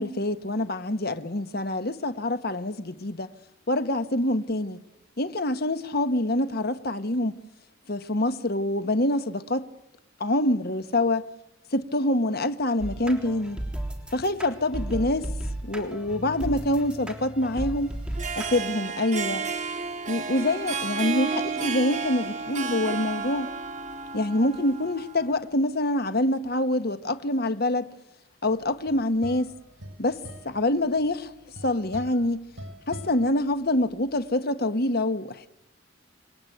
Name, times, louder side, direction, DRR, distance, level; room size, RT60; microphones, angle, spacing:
voice 1, 0.0-3.3 3.7-4.8 5.2-7.4 7.9-9.7 10.2-11.2 11.7-13.6 14.1-15.3 15.6-17.9 18.4-19.5 20.1-23.5 24.1-27.9 28.4-29.5 30.0-31.3 31.6-32.4 32.9-35.5, left 1 dB, 50° left, 1.3 m, -26 dB
sound 1, 12.8-18.5, right 1 dB, 5° right, 3.4 m, -35 dB
Harp, 18.0-25.4, right 4 dB, 35° right, 2.3 m, -32 dB
sound 2, 28.6-34.1, equal, 70° right, 5.9 m, -44 dB
27.0 x 21.5 x 9.3 m
head